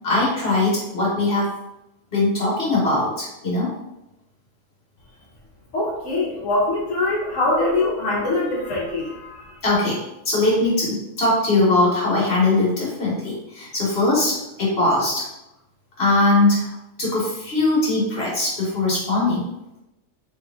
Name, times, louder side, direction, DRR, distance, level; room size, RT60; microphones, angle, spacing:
voice 1, 0.0-1.5 2.1-3.7 9.6-10.0 10.2-15.2 16.0-16.7 17.0-19.4, left 2 dB, 55° left, -5 dB, 1.6 m, -20 dB
voice 2, 5.7-9.5, left 2 dB, 75° left, -5 dB, 1.3 m, -23 dB
3.4 x 3.1 x 3.5 m, 0.91 s
omnidirectional pair, 1.3 m